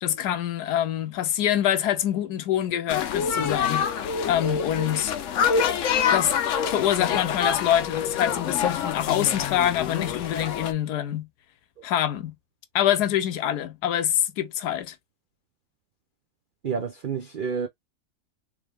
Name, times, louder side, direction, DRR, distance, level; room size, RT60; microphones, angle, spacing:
voice 1, 0.0-3.9 4.2-5.1 6.1-6.3 6.7-11.3 11.8-12.3 12.7-15.0, left 11 dB, 85° left, 1.2 m, -25 dB
sound 1, 2.9-10.7, left 7 dB, 65° left, 0.9 m, -26 dB
voice 2, 16.6-17.7, right 6 dB, 85° right, 0.4 m, -29 dB
3.3 x 3.0 x 3.4 m
omnidirectional pair, 1.7 m